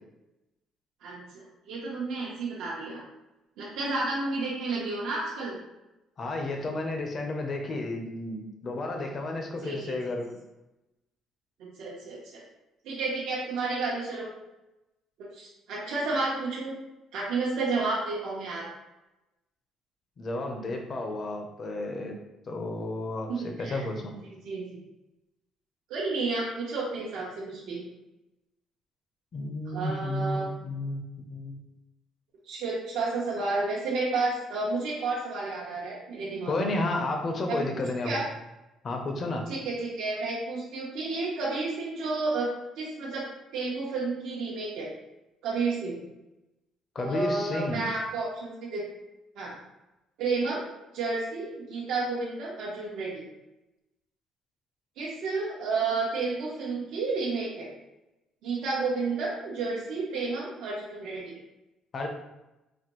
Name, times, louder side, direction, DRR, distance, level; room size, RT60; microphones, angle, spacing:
voice 1, 1.0-3.0 3.6-5.6 9.6-9.9 11.8-12.4 12.8-14.3 15.3-16.7 17.1-18.7 23.3-23.8 24.4-24.6 25.9-27.8 29.7-30.5 32.5-36.8 38.0-38.3 39.5-42.5 42.8-43.3 43.5-44.9 45.4-46.0 47.0-48.8 49.3-49.6 50.2-50.6 50.9-53.2 55.0-57.7 58.4-61.4, right 3 dB, 75° right, -5 dB, 0.8 m, -31 dB
voice 2, 6.2-10.3 20.2-22.2 22.5-24.1 29.3-31.6 36.5-38.2 38.8-39.4 46.9-47.8 61.9-62.1, left 2 dB, 35° left, 3 dB, 0.6 m, -32 dB
4.1 x 2.6 x 3.0 m, 0.97 s
cardioid pair, 145°, 0 cm